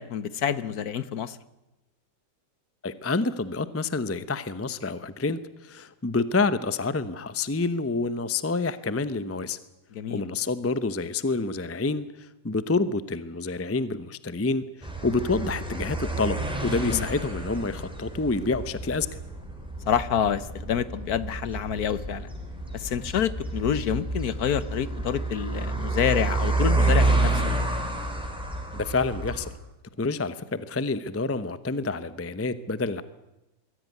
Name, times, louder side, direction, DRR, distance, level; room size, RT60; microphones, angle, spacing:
voice 1, 0.0-1.4 9.9-10.2 16.8-17.1 19.9-22.3 22.7-27.4, left 8 dB, 60° left, 16 dB, 1.3 m, -27 dB
voice 2, 2.8-9.6 10.1-19.2 28.7-29.5 30.0-33.0, left 3 dB, 20° left, 14 dB, 0.3 m, -28 dB
sound 1, 14.8-29.5, right 2 dB, 5° right, 4.0 m, -29 dB
23.0 x 16.5 x 9.4 m, 0.98 s
omnidirectional pair, 1.9 m